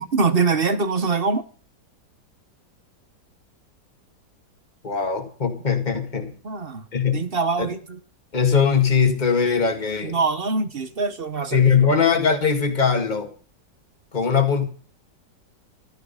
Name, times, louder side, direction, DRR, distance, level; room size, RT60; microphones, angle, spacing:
voice 1, 0.0-1.4 6.4-6.9 7.1-8.0 10.0-11.6, right 4 dB, 40° right, 12 dB, 1.0 m, -23 dB
voice 2, 4.8-6.3 6.9-7.2 7.6-7.7 8.3-10.2 11.5-13.3 14.1-14.7, left 6 dB, 25° left, 6 dB, 2.1 m, -20 dB
15.0 x 12.5 x 5.6 m, 0.40 s
omnidirectional pair, 1.9 m